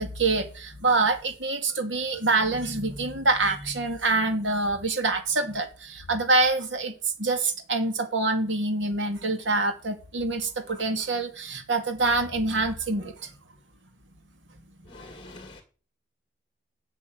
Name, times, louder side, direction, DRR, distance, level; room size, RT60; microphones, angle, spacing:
voice 1, 0.0-6.9 7.2-13.3, right 3 dB, 80° right, 2.6 m, -26 dB
voice 2, 14.9-15.6, left 2 dB, 25° left, 2.0 m, -45 dB
12.5 x 6.2 x 9.5 m
head